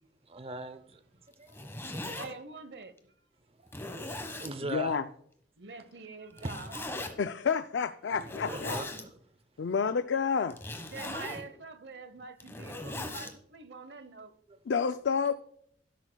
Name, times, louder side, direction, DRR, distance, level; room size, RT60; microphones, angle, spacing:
voice 1, 0.3-1.0 1.4-2.2 3.6-3.9 4.2-5.0 6.4-7.0 8.1-9.2 14.5-14.6, right 2 dB, 35° right, 0.7 m, -41 dB
Zipper (clothing), 1.3-2.3 3.0-3.1 3.7-4.5 6.4-7.1 8.1-9.0 10.5-11.4 12.2-13.3, left 2 dB, 15° left, 1.3 m, -39 dB
voice 2, 2.1-3.1 5.6-6.7 10.9-14.3, right 3 dB, 70° right, 1.0 m, -45 dB
voice 3, 4.7-5.0 7.2-8.8 9.6-10.6 14.7-15.3, left 6 dB, 80° left, 0.4 m, -29 dB
12.5 x 11.5 x 2.3 m
head